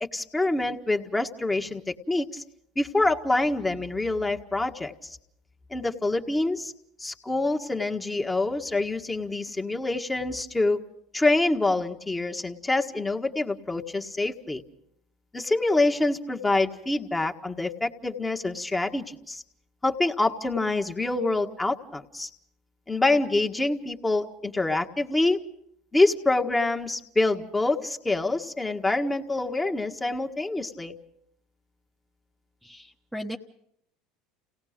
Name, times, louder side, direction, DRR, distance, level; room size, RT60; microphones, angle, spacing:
voice 1, 0.1-2.4 2.7-5.2 5.7-6.7 7.0-10.8 11.1-14.6 15.3-19.4 19.8-22.3 22.9-25.4 25.9-30.9, left 2 dB, 15° left, 4 dB, 1.6 m, -26 dB
voice 2, 32.6-33.4, equal, 5° right, 0 dB, 1.2 m, -37 dB
29.5 x 18.0 x 5.1 m, 0.71 s
hypercardioid pair, 90°, 0 cm